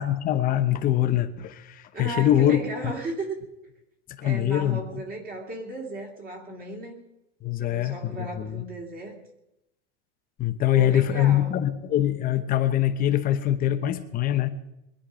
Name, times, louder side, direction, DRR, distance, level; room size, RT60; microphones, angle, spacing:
voice 1, 0.0-2.6 4.2-5.0 7.4-8.6 10.4-14.5, left 12 dB, 25° left, 8 dB, 1.0 m, -23 dB
voice 2, 1.9-3.4 4.2-7.0 7.6-9.2 10.7-11.6, right 2 dB, 25° right, 1 dB, 2.5 m, -35 dB
22.0 x 10.0 x 5.1 m, 0.87 s
supercardioid pair, 160°, 36 cm